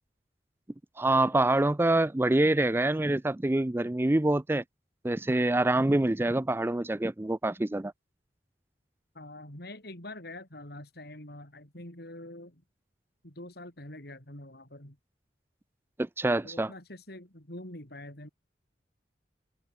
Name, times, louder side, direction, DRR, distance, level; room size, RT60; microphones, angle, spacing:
voice 1, 1.0-4.6 5.0-7.9 16.0-16.7, right 2 dB, 15° right, 0.4 m, -26 dB
voice 2, 9.1-12.6 13.2-15.0 16.4-18.3, left 1 dB, 60° left, 7.1 m, -45 dB
open air
head